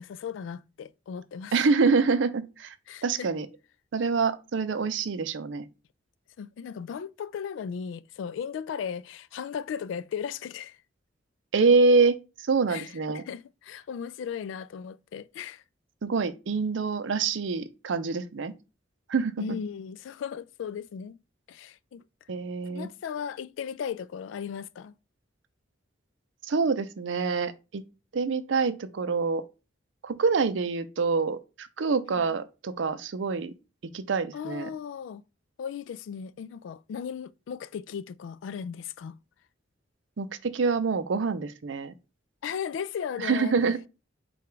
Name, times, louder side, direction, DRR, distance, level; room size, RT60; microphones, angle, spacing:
voice 1, 0.0-1.5 2.9-3.3 6.4-10.8 12.7-15.6 19.4-21.2 21.5-22.0 22.7-24.9 32.1-32.4 34.3-35.2 35.6-39.2 42.4-43.5, left 7 dB, 80° left, 0.3 m, -36 dB
voice 2, 1.5-2.7 3.0-3.5 3.9-5.6 11.5-13.2 16.0-18.5 19.1-19.5 22.3-22.9 26.5-27.8 28.1-29.4 30.0-33.5 33.9-34.7 40.2-41.9 43.2-43.8, right 4 dB, 80° right, 0.5 m, -26 dB
4.9 x 2.3 x 4.5 m
head